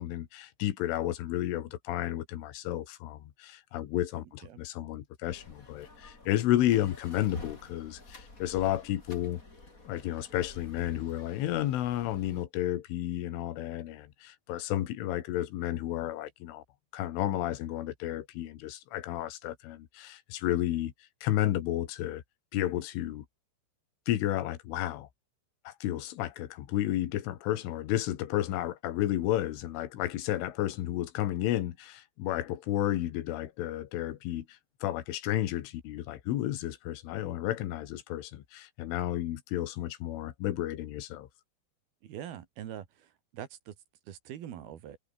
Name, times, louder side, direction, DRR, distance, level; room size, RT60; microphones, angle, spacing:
voice 1, 0.0-9.4 9.9-16.6 16.9-20.9 21.2-22.2 22.5-23.3 24.1-25.1 25.7-41.3, left 13 dB, 80° left, 4.2 m, -32 dB
sound 1, 5.3-12.5, left 2 dB, 15° left, 4.7 m, -50 dB
voice 2, 42.0-43.7 44.1-45.0, right 10 dB, 60° right, 3.4 m, -43 dB
omnidirectional pair, 5.7 m